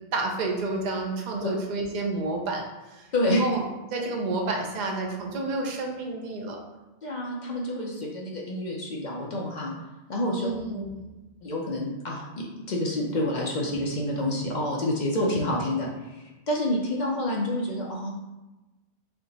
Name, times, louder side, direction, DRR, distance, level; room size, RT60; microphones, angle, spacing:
voice 1, 0.1-2.6 2.9-3.6 3.9-6.6 10.3-11.0, right 2 dB, 50° right, 1 dB, 0.6 m, -30 dB
voice 2, 7.0-9.7 10.1-10.5 11.4-18.1, left 1 dB, 50° left, -2 dB, 0.6 m, -28 dB
3.4 x 2.8 x 3.9 m, 1.1 s
omnidirectional pair, 1.2 m